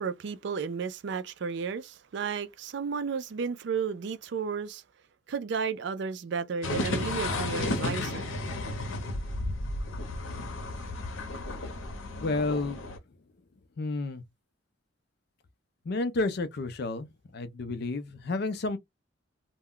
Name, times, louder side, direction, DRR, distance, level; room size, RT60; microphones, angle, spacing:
voice 1, 0.0-4.8 5.3-8.3, right 6 dB, 60° right, 0.4 m, -33 dB
sound 1, 6.6-13.0, left 2 dB, 90° left, 0.7 m, -33 dB
voice 2, 12.2-12.8 13.8-14.2 15.9-17.1 17.3-18.8, left 3 dB, 55° left, 0.4 m, -30 dB
2.2 x 2.1 x 3.6 m
head